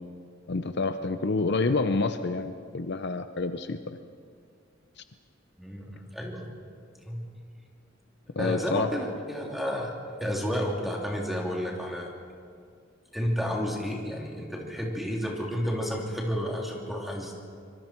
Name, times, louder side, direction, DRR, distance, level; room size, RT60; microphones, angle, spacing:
voice 1, 0.5-3.8 8.3-8.9, left 3 dB, 60° left, 9 dB, 0.7 m, -28 dB
voice 2, 5.6-6.5 7.1-7.2 8.4-9.9 10.2-12.1 13.1-17.3, equal, ahead, -2 dB, 3.2 m, -31 dB
25.0 x 23.0 x 4.6 m, 2.2 s
head